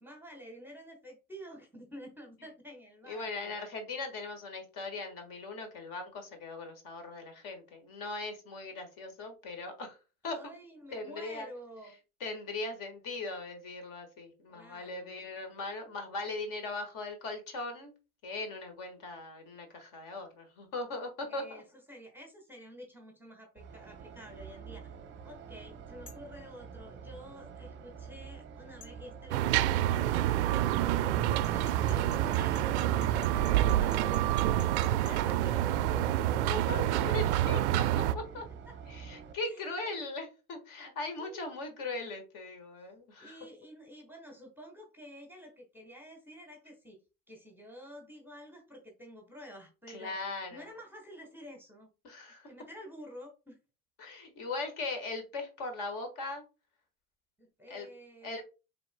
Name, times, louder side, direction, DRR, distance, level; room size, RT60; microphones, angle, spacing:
voice 1, 0.0-3.6 10.3-12.0 14.5-15.2 21.3-24.9 25.2-34.1 34.8-36.3 38.7-38.8 39.4-40.0 41.2-41.5 43.2-47.0 47.3-50.2 50.5-51.9 52.5-53.6 57.4-58.4, equal, 5° right, 1 dB, 1.1 m, -50 dB
voice 2, 3.1-10.0 10.2-10.4 10.9-11.5 12.2-17.9 18.2-21.6 36.5-38.4 38.9-43.4 49.9-50.6 52.0-52.5 54.0-56.4 57.7-57.9 58.2-58.4, left 3 dB, 45° left, 6 dB, 1.6 m, -39 dB
sound 1, 23.6-39.3, right 6 dB, 25° right, 0.7 m, -48 dB
sound 2, 26.1-26.3 28.8-29.0 31.4-35.2, left 6 dB, 85° left, 1.2 m, -52 dB
sound 3, 29.3-38.1, right 13 dB, 50° right, 0.4 m, -27 dB
6.8 x 3.6 x 2.2 m, 0.31 s
figure-of-eight pair, 70°, 46 cm